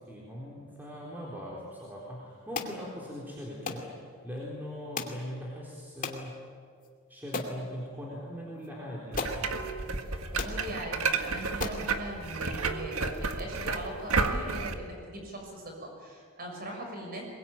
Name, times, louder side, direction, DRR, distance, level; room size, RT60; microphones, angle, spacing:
voice 1, 0.0-6.4 7.1-9.2, equal, 10° right, -5 dB, 3.9 m, -40 dB
sound 1, 2.5-2.8 3.7-3.9 5.0-5.2 6.0-6.2 6.8-6.9 7.3-7.6 8.6-8.7 9.2-9.4 10.0-10.1 10.4-10.6 11.2-11.3 11.6-11.9, left 4 dB, 40° left, 2.5 m, -35 dB
sound 2, 9.1-14.7, right 4 dB, 70° right, 1.7 m, -31 dB
voice 2, 10.0-17.2, right 1 dB, 40° right, 2 dB, 6.5 m, -40 dB
22.5 x 22.0 x 9.1 m, 2.1 s
head